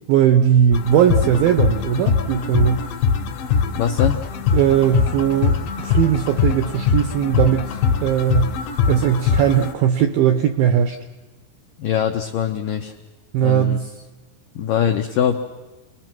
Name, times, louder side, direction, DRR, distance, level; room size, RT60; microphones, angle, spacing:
voice 1, 0.1-2.9 4.5-8.6 8.9-11.0 13.3-13.9, right 9 dB, 80° right, 8 dB, 2.1 m, -18 dB
sound 1, 0.7-9.7, left 6 dB, 65° left, 2.6 m, -22 dB
voice 2, 3.8-4.2 11.8-12.9 13.4-13.8 14.6-15.4, left 9 dB, 90° left, 4 dB, 1.9 m, -22 dB
29.0 x 21.0 x 6.1 m, 1.2 s
omnidirectional pair, 5.2 m